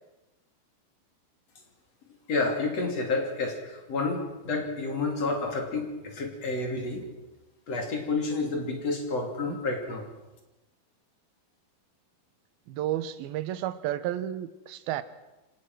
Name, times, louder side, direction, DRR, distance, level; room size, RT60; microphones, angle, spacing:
voice 1, 2.3-7.1 7.7-10.0, left 3 dB, 45° left, 3 dB, 3.5 m, -30 dB
voice 2, 12.7-15.0, right 12 dB, 80° right, 13 dB, 2.8 m, -32 dB
25.5 x 18.5 x 6.1 m, 1.0 s
omnidirectional pair, 4.3 m